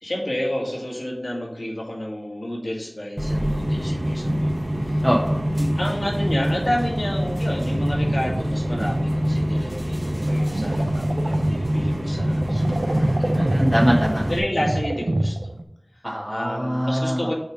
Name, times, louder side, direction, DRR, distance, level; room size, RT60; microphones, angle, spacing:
voice 1, 0.0-4.5 4.9-5.0 5.6-13.3 14.3-15.4 15.9-17.3, equal, 60° left, -3 dB, 2.0 m, -30 dB
sound 1, 3.2-14.4, equal, 35° right, 1.2 m, -25 dB
voice 2, 5.0-5.4 13.3-14.2 16.0-17.2, equal, 5° left, -3 dB, 0.9 m, -22 dB
sound 2, 7.7-15.6, right 1 dB, 75° right, 0.5 m, -28 dB
6.8 x 3.4 x 5.1 m, 0.83 s
wide cardioid pair, 45°, 0 cm